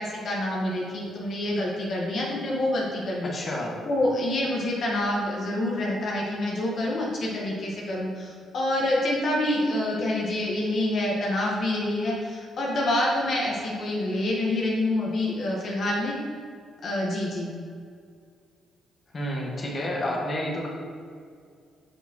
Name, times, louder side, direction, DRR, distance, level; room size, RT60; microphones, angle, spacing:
voice 1, 0.0-3.5 3.8-16.2 16.8-17.5, left 1 dB, 60° left, -3 dB, 1.2 m, -27 dB
voice 2, 3.3-3.8 19.1-20.7, left 1 dB, 40° left, -2 dB, 1.4 m, -30 dB
6.6 x 6.1 x 2.9 m, 2.2 s
cardioid pair, 90°, 0 cm